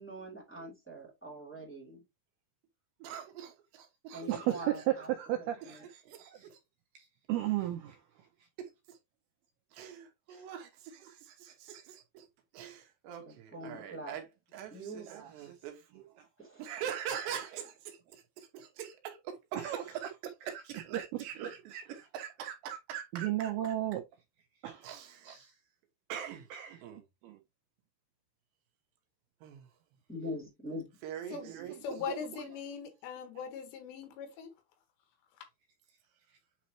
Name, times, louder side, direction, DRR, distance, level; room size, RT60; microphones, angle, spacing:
voice 1, 0.0-2.0 4.1-5.1 5.4-5.9 13.2-14.2 14.7-15.1 16.4-16.7 30.1-30.9, equal, 5° left, 1.9 m, -43 dB
voice 2, 3.0-4.3 6.1-6.3 9.7-12.2 12.5-14.2 14.5-15.0 15.3-15.8 16.6-19.6 19.9-20.1 20.5-23.5 24.8-25.4 26.1-26.4 26.8-27.0 29.4-29.6 31.0-31.4, right 9 dB, 75° right, 2.9 m, -43 dB
voice 3, 4.3-5.9 6.3-6.5 7.3-8.0 10.3-10.5 11.0-11.1 15.1-15.5 15.9-16.1 17.1-17.5 19.5-20.2 20.5-22.0 22.2-22.3 23.1-24.0 24.6-24.9 25.2-25.5 26.5-26.8 27.2-27.4 31.3-32.5, right 14 dB, 90° right, 2.2 m, -36 dB
voice 4, 31.8-34.5, left 6 dB, 85° left, 4.1 m, -40 dB
9.0 x 4.1 x 3.0 m
omnidirectional pair, 5.5 m